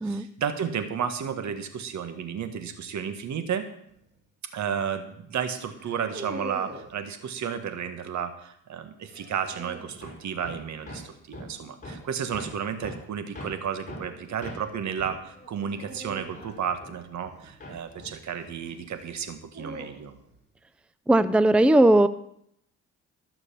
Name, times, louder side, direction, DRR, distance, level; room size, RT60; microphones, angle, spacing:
voice 1, 0.0-3.7 4.5-20.1, right 7 dB, 65° right, 9 dB, 1.6 m, -32 dB
sound 1, 3.9-4.2 5.7-7.0 9.1-10.1 12.5-12.9 15.7-18.1 19.1-20.4, right 2 dB, 35° right, 2.1 m, -43 dB
Hammer, 10.0-17.3 17.6-19.4, equal, 25° left, 5.6 m, -44 dB
voice 2, 21.1-22.1, right 1 dB, 5° right, 14 dB, 0.5 m, -18 dB
14.5 x 6.9 x 7.0 m, 0.72 s
cardioid pair, 90°, 30 cm